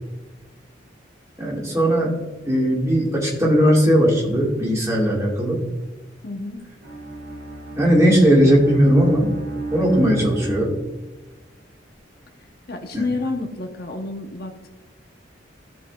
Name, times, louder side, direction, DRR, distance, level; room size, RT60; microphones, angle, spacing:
voice 1, 1.4-2.1 2.5-5.6 7.8-9.3 9.7-10.7 12.9-13.0, equal, 15° right, -4 dB, 2.1 m, -18 dB
voice 2, 6.2-6.6 12.7-14.7, left 3 dB, 55° left, 3 dB, 1.0 m, -29 dB
Bowed string instrument, 6.8-11.2, right 2 dB, 75° right, 1.7 m, -33 dB
15.0 x 5.0 x 2.4 m, 1.2 s
head